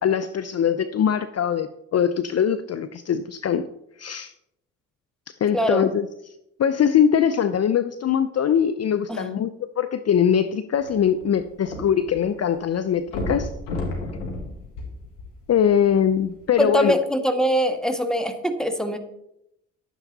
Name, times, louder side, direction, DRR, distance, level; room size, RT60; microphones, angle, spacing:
voice 1, 0.0-3.6 4.0-4.3 5.4-6.1 6.6-13.5 15.5-17.0, left 8 dB, 45° left, 11 dB, 0.6 m, -22 dB
voice 2, 5.5-5.9 9.1-9.4 16.6-19.0, equal, ahead, 7 dB, 1.7 m, -23 dB
sound 1, 10.8-12.3 12.6-12.7 13.1-15.6 16.3-16.4, left 2 dB, 85° left, 2.0 m, -31 dB
11.5 x 9.1 x 4.0 m, 0.81 s
hypercardioid pair, 40°, 36 cm